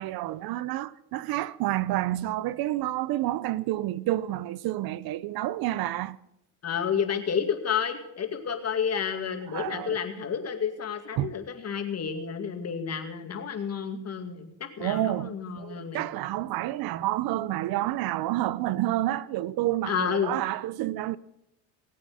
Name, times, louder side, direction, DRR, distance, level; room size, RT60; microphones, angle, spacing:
voice 1, 0.0-6.2 9.5-10.0 11.2-11.3 14.8-21.2, right 15 dB, 65° right, 0.7 m, -29 dB
voice 2, 6.6-16.1 19.9-20.3, left 7 dB, 40° left, 2.3 m, -30 dB
19.5 x 8.5 x 6.4 m
cardioid pair, 110°, 39 cm